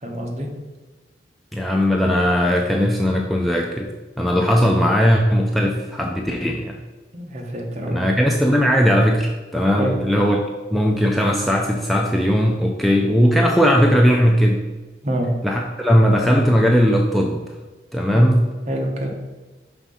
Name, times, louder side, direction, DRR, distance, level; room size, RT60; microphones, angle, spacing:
voice 1, 0.0-0.5 7.1-8.0 9.8-10.0 15.0-15.3 18.7-19.1, right 1 dB, 40° right, 1 dB, 1.0 m, -26 dB
voice 2, 1.5-3.9 4.2-6.8 7.9-10.4 10.7-14.6 15.4-17.4 17.9-18.4, equal, ahead, -1 dB, 0.4 m, -18 dB
5.8 x 3.6 x 5.5 m, 1.2 s
head